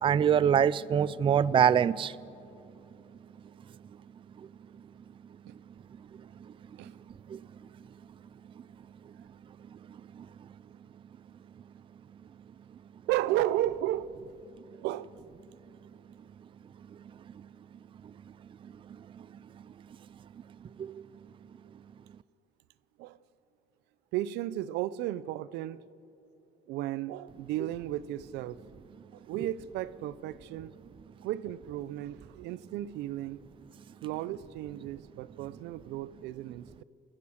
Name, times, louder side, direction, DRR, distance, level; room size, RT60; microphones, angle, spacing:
voice 1, 0.0-2.2 7.3-7.4 10.2-10.3 20.8-21.0, right 8 dB, 30° right, 0.4 m, -24 dB
voice 2, 13.1-14.2 14.7-15.1 23.0-23.2 24.1-25.8 26.7-28.6 29.1-30.7 31.2-33.4 34.0-36.8, right 14 dB, 90° right, 0.6 m, -34 dB
29.0 x 14.0 x 6.5 m
cardioid pair, 110°, 17 cm